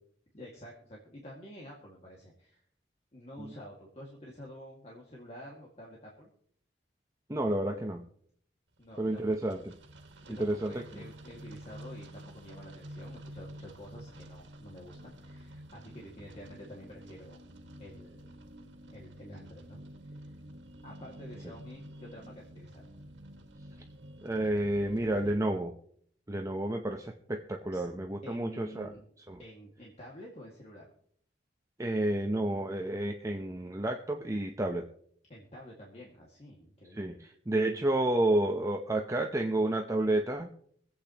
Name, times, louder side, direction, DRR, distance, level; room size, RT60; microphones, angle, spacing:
voice 1, 0.3-2.6 3.1-6.3 8.8-9.2 10.2-17.4 17.8-18.4 18.9-19.8 20.1-20.2 20.8-22.9 27.7-27.8 28.2-29.0 29.4-30.9 35.3-37.3 37.6-37.8, equal, 35° left, -3 dB, 2.0 m, -49 dB
voice 2, 7.3-8.1 9.0-9.7 10.3-10.8 24.2-25.7 26.3-28.9 29.3-29.4 31.8-34.9 36.9-40.5, right 1 dB, 15° right, 2 dB, 0.7 m, -30 dB
sound 1, 8.8-25.4, right 1 dB, 85° right, 1.8 m, -49 dB
24.5 x 8.4 x 2.9 m, 0.63 s
head